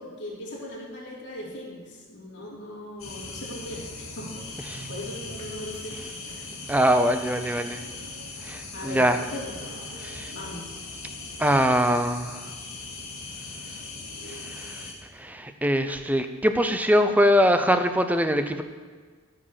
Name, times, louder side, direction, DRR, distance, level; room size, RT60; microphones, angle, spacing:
voice 1, 0.0-6.0 6.2-6.5 8.7-9.5 10.3-10.7, left 1 dB, 55° left, -5 dB, 3.6 m, -39 dB
sound 1, 3.0-14.9, left 3 dB, 70° left, 2.3 m, -39 dB
voice 2, 6.7-7.8 8.4-9.2 10.0-10.3 11.4-12.3 14.5-14.8 15.2-18.6, equal, 5° right, 8 dB, 0.6 m, -22 dB
14.0 x 5.2 x 7.4 m, 1.5 s
head